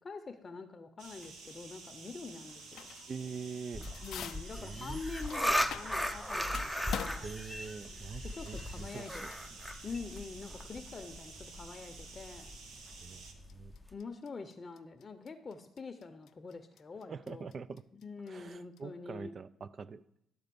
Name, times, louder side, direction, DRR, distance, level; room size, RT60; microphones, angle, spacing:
voice 1, 0.0-2.9 4.0-7.3 8.3-9.4 9.8-12.5 13.9-17.5 18.0-19.4, left 4 dB, 35° left, 8 dB, 0.7 m, -45 dB
sound 1, 1.0-13.3, right 4 dB, 80° right, 1.2 m, -51 dB
sound 2, 1.2-1.6 2.3-3.2 3.5-6.2 6.5-18.8, left 9 dB, 70° left, 0.4 m, -48 dB
voice 2, 3.1-3.9 4.6-5.0 7.2-9.6 13.0-13.7 17.1-17.8 18.3-20.0, right 5 dB, 45° right, 17 dB, 0.4 m, -44 dB
sound 3, 3.7-13.9, equal, ahead, 0.6 m, -38 dB
11.5 x 4.0 x 6.9 m, 0.77 s
supercardioid pair, 75°, 0 cm